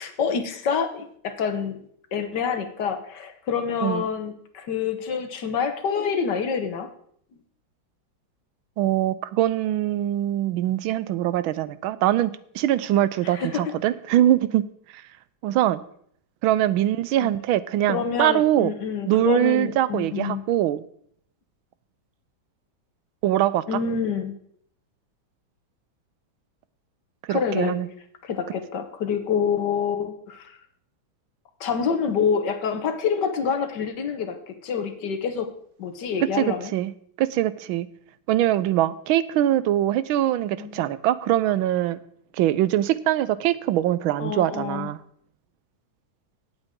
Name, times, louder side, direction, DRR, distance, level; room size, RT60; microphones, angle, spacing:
voice 1, 0.0-1.8 2.1-6.9 13.2-13.7 17.2-17.3 17.9-20.4 23.7-24.3 27.3-27.8 28.2-30.6 31.6-35.5 35.8-36.7 40.5-40.8 44.2-44.9, left 6 dB, 60° left, 8 dB, 1.6 m, -27 dB
voice 2, 8.8-14.6 14.9-15.0 15.4-15.8 16.4-18.7 19.0-20.8 23.2-23.8 27.2-27.9 36.4-36.9 37.2-37.9 38.3-42.0 42.3-45.0, right 13 dB, 90° right, 16 dB, 1.4 m, -23 dB
17.0 x 7.9 x 3.7 m, 0.64 s
omnidirectional pair, 2.2 m